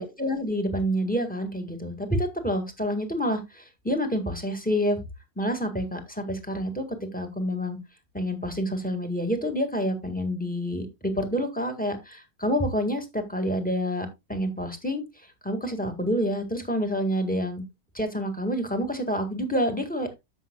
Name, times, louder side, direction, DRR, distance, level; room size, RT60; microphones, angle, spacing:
voice 1, 0.0-5.0 5.4-6.8 7.1-7.8 8.1-15.0 15.4-17.6 17.9-20.1, equal, 5° left, 6 dB, 1.7 m, -28 dB
11.5 x 7.6 x 2.3 m, 0.22 s
omnidirectional pair, 1.6 m